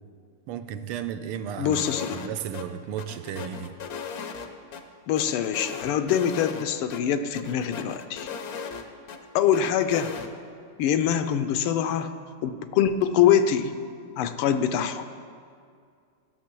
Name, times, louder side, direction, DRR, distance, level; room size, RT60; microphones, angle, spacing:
voice 1, 0.5-1.9 2.1-3.7, right 9 dB, 85° right, 10 dB, 1.5 m, -34 dB
voice 2, 1.6-2.2 5.1-8.3 9.3-10.1 10.8-12.1 12.4-13.7 14.2-15.0, left 9 dB, 85° left, 10 dB, 1.6 m, -24 dB
sound 1, 1.7-2.3 2.5-2.7 3.0-4.8 5.2-6.7 6.9-7.0 7.3-9.2 9.5-10.3, left 6 dB, 65° left, 0.9 m, -37 dB
15.0 x 6.5 x 6.1 m, 2.3 s
omnidirectional pair, 2.4 m